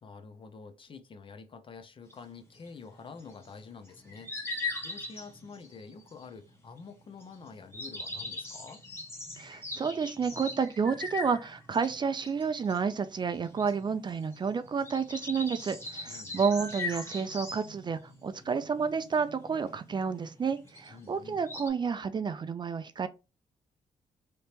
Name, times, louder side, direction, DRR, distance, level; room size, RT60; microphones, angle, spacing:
voice 1, 0.0-4.4 4.8-8.8 16.1-16.5 20.9-21.4, left 4 dB, 40° left, 0.5 m, -48 dB
sound 1, 2.1-21.7, left 3 dB, 20° left, 1.2 m, -41 dB
voice 2, 9.4-23.1, right 6 dB, 35° right, 0.3 m, -30 dB
3.3 x 2.8 x 2.8 m
cardioid pair, 100°, 13 cm